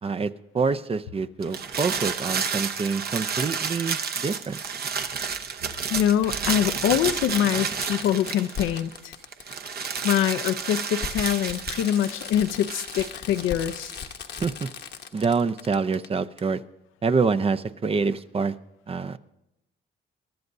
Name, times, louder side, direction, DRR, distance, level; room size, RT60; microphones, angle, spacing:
voice 1, 0.0-4.6 14.4-14.7 15.1-16.6 17.0-18.6 18.9-19.2, right 4 dB, 30° right, 11 dB, 0.6 m, -26 dB
sound 1, 1.4-9.0 9.3-14.1, right 6 dB, 50° right, 1.0 m, -31 dB
Fireworks, 2.9-3.0 4.5-4.6 6.2-6.3 6.8-6.9 7.2-16.1 16.4-16.5, left 7 dB, 60° left, 1.0 m, -38 dB
voice 2, 5.9-9.1 10.0-13.9, left 10 dB, 85° left, 11 dB, 0.7 m, -24 dB
22.5 x 12.5 x 2.7 m, 0.89 s
cardioid pair, 90°, 20 cm